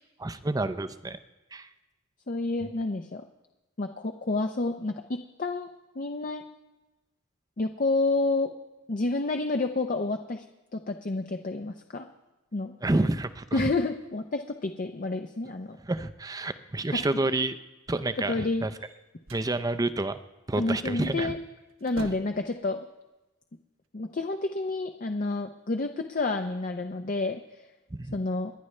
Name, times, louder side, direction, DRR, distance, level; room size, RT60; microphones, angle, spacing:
voice 1, 0.2-1.2 1.5-1.7 12.8-13.7 15.8-17.6 17.9-18.7 19.3-20.2 20.5-21.3 27.9-28.2, right 2 dB, 20° right, 11 dB, 0.5 m, -29 dB
voice 2, 2.3-3.2 3.8-5.7 6.0-6.4 7.6-8.5 8.9-10.4 10.7-12.1 12.5-12.7 13.5-15.8 18.2-18.7 20.6-21.4 21.8-22.8 23.9-27.4 28.1-28.5, left 2 dB, 40° left, 5 dB, 0.6 m, -29 dB
sound 1, 18.8-19.6 21.2-21.4 21.7-22.5, right 2 dB, 90° right, 1.1 m, -43 dB
28.5 x 10.5 x 3.3 m, 1.1 s
head